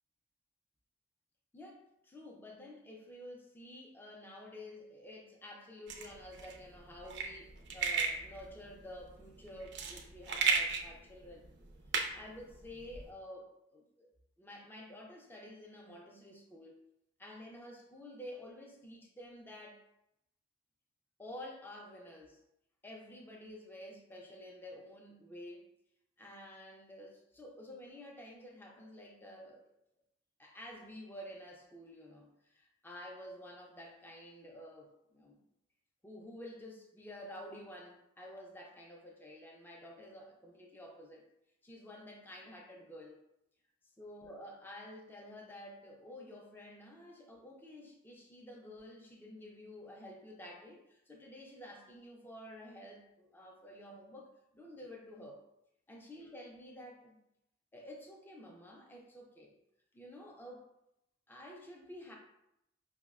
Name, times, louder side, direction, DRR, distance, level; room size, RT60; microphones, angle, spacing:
voice 1, 1.5-11.5 12.1-14.1 14.4-16.8 17.2-19.8 21.2-22.4 22.8-25.7 26.2-29.7 30.4-35.4 36.0-41.2 41.6-43.2 44.0-55.4 55.9-57.2 57.7-59.5 59.9-60.7 61.3-62.1, left 1 dB, 10° left, 0 dB, 0.4 m, -50 dB
Pill bottle, 5.9-13.1, right 5 dB, 60° right, 0.4 m, -35 dB
5.1 x 2.0 x 2.3 m, 0.83 s
head